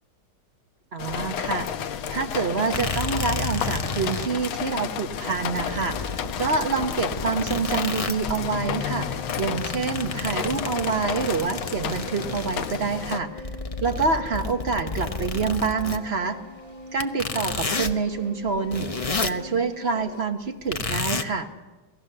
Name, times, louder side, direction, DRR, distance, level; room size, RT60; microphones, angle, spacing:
voice 1, 0.9-13.4 13.8-16.4 16.9-18.9 19.2-21.5, right 4 dB, 40° right, 7 dB, 1.0 m, -27 dB
sound 1, 1.0-13.2, left 8 dB, 85° left, 1.7 m, -32 dB
sound 2, 1.8-1.9 2.7-4.3 5.1-5.2 5.6-8.5 8.9-12.7 13.2-16.0 17.0-18.0 18.4-19.4 20.7-21.2, left 3 dB, 55° left, 0.4 m, -31 dB
sound 3, 8.6-20.2, left 1 dB, 20° left, 1.4 m, -43 dB
28.0 x 17.5 x 6.8 m, 1.3 s
omnidirectional pair, 2.3 m